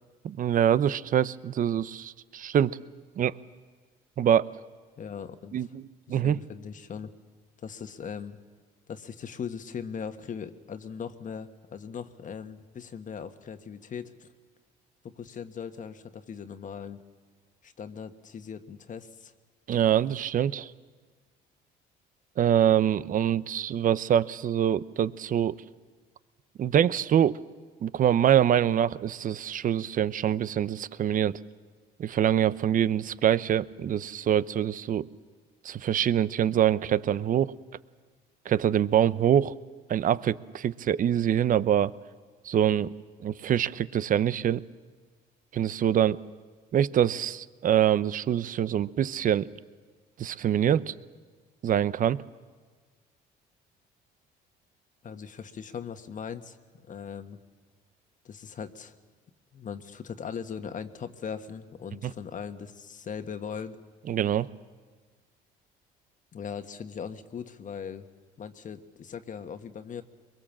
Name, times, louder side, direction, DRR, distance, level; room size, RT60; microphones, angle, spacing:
voice 1, 0.2-2.8 3.2-3.4 4.2-4.5 5.5-5.8 6.1-6.4 19.7-20.7 22.4-25.6 26.6-27.4 27.8-31.4 32.0-35.1 35.6-37.5 38.5-39.5 39.9-41.9 42.4-42.9 43.2-44.6 45.5-46.2 46.7-49.5 50.2-50.9 51.6-52.2 64.1-64.5, right 10 dB, 50° right, 17 dB, 0.7 m, -24 dB
voice 2, 5.0-5.6 6.1-7.1 7.6-8.4 8.9-14.3 15.0-17.0 17.6-19.3 55.0-56.6 56.9-57.4 58.2-58.9 59.5-63.8 66.3-68.1 68.4-70.0, left 7 dB, 45° left, 9 dB, 1.5 m, -39 dB
23.5 x 22.0 x 7.4 m, 1.5 s
supercardioid pair, 80°, 18 cm